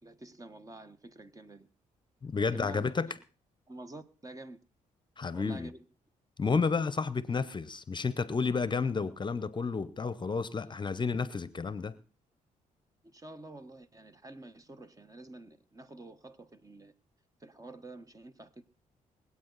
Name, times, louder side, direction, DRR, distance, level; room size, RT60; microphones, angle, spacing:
voice 1, 0.0-1.7 2.5-2.9 3.7-4.6 5.3-5.8 13.0-16.9 17.4-18.6, right 2 dB, 25° right, 1.3 m, -48 dB
voice 2, 2.2-3.1 5.2-5.7 6.4-11.9, left 4 dB, 35° left, 0.8 m, -31 dB
23.5 x 8.5 x 4.1 m
cardioid pair, 70°, 14 cm